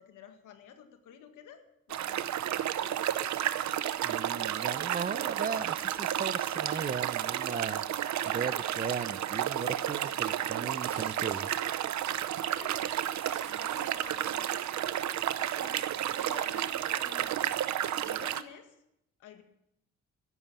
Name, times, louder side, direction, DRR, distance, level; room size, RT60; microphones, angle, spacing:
voice 1, 0.0-3.2 4.7-5.0 12.5-13.0 13.2-14.8 15.4-18.8 19.2-19.4, left 8 dB, 90° left, 7 dB, 1.9 m, -52 dB
sound 1, 1.9-18.4, right 11 dB, 70° right, 0.9 m, -32 dB
voice 2, 4.0-7.8 8.3-11.5, right 6 dB, 30° right, 16 dB, 0.7 m, -37 dB
sound 2, 10.8-11.5 12.1-12.2 12.7-12.8 13.2-13.9 14.4-14.5 15.2-15.3 16.1-16.8 17.4-17.5, left 2 dB, 45° left, 8.0 m, -54 dB
14.0 x 11.0 x 6.9 m, 0.80 s
cardioid pair, 90°, 30 cm